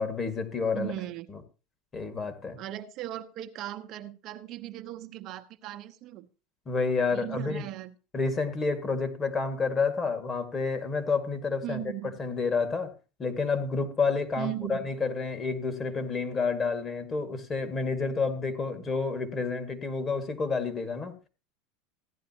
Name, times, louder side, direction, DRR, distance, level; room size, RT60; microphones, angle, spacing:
voice 1, 0.0-0.9 1.3-1.4 1.9-2.6 6.7-7.6 8.1-11.8 12.2-12.9 13.2-21.1, left 4 dB, 30° left, 2.1 m, -29 dB
voice 2, 0.7-1.3 2.6-6.3 7.1-7.9 11.6-12.2 14.4-14.9, right 14 dB, 50° right, 0.9 m, -37 dB
15.5 x 10.5 x 3.0 m
hypercardioid pair, 90°, 0 cm